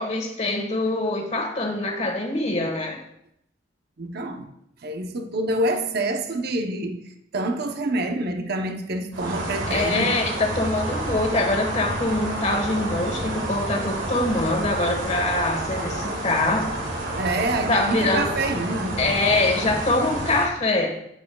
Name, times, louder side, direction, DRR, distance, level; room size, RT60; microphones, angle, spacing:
voice 1, 0.0-3.0 9.7-16.7 17.7-18.3 19.0-21.0, left 2 dB, 35° left, 1.4 m, -24 dB
voice 2, 4.0-4.5 4.8-10.2 17.2-19.0, right 1 dB, 55° right, 0.8 m, -27 dB
sound 1, 9.1-20.5, right 1 dB, 75° right, 1.8 m, -29 dB
10.0 x 9.1 x 2.3 m
head